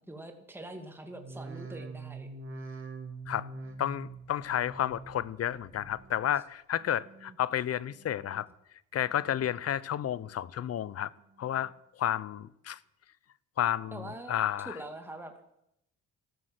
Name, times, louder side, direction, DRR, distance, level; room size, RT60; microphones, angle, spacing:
voice 1, 0.1-2.3 13.9-15.3, right 1 dB, 5° right, 2.3 m, -44 dB
sound 1, 1.1-6.5 6.8-7.4 7.8-8.5 8.9-9.6 10.0-10.7 11.2-11.7 12.3-12.4, right 3 dB, 45° right, 2.7 m, -46 dB
voice 2, 3.8-8.5 8.9-11.1 11.4-11.7 12.0-12.8 13.6-14.0 14.3-14.8, left 10 dB, 55° left, 0.7 m, -31 dB
14.0 x 13.0 x 7.7 m
cardioid pair, 90°, 30 cm